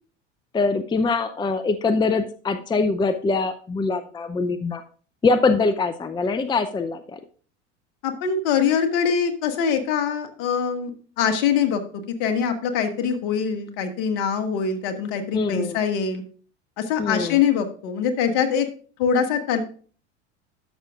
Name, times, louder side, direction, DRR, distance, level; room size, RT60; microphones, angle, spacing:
voice 1, 0.5-4.8 5.2-7.2 15.3-15.8 17.0-17.4, left 4 dB, 10° left, 10 dB, 0.5 m, -23 dB
voice 2, 8.0-10.9 11.2-11.8 12.2-16.2 16.8-18.7 19.0-19.6, left 7 dB, 60° left, 8 dB, 1.5 m, -23 dB
13.0 x 6.3 x 2.4 m, 0.41 s
hypercardioid pair, 80°, 36 cm